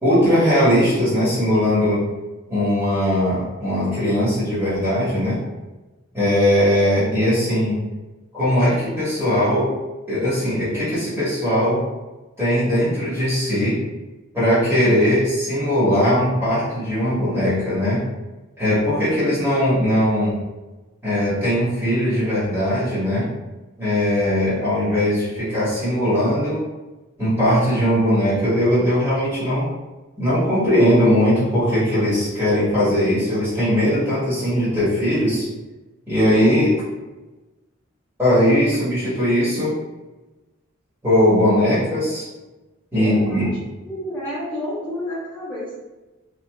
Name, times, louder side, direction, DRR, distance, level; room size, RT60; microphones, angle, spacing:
voice 1, 0.0-2.0 2.5-5.4 6.1-7.8 8.3-9.7 10.1-11.8 12.4-13.8 14.3-18.0 18.6-20.4 21.0-23.3 23.8-26.6 27.2-29.7 30.2-35.5 36.1-36.7 38.2-39.7 41.0-42.3 42.9-43.5, equal, 10° right, -12 dB, 1.1 m, -19 dB
voice 2, 42.9-43.6 43.8-45.7, left 1 dB, 5° left, -12 dB, 0.9 m, -30 dB
3.0 x 2.7 x 2.2 m, 1.1 s
head